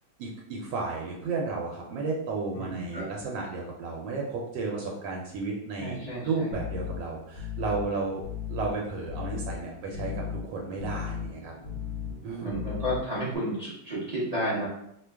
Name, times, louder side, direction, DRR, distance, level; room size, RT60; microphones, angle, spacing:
voice 1, 0.2-6.0 6.2-11.5 12.2-12.6, right 4 dB, 80° right, -1 dB, 1.3 m, -33 dB
voice 2, 2.5-3.0 5.8-6.6 12.4-14.7, equal, 45° right, -8 dB, 0.5 m, -32 dB
sound 1, 6.5-13.4, left 8 dB, 70° left, 0.6 m, -37 dB
3.0 x 2.2 x 3.3 m, 0.74 s
omnidirectional pair, 2.0 m